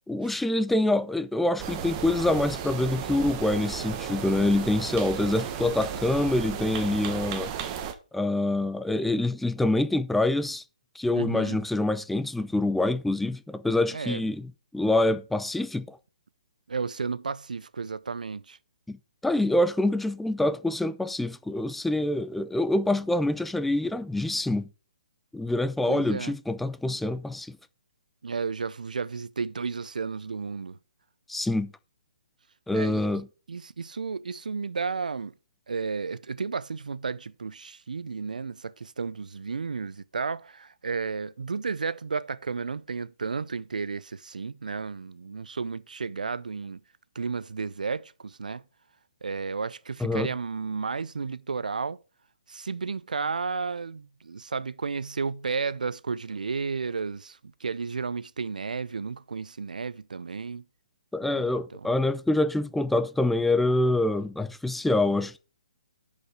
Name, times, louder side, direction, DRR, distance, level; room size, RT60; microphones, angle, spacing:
voice 1, 0.1-7.5 8.1-10.6 11.0-16.0 18.9-19.0 19.2-24.7 25.3-27.6 31.3-31.7 32.7-33.3 50.0-50.3 61.1-65.4, left 2 dB, 5° left, 0.4 m, -26 dB
sound 1, 1.6-7.9, right 8 dB, 30° right, 1.3 m, -34 dB
voice 2, 11.1-11.6 13.9-14.3 16.7-18.6 25.9-26.4 28.2-30.8 32.7-33.2 33.5-35.3 35.7-46.8 47.1-48.6 49.2-52.0 52.5-60.6 61.3-61.9, right 5 dB, 80° right, 0.6 m, -33 dB
10.0 x 5.3 x 4.6 m
hypercardioid pair, 140°, 4 cm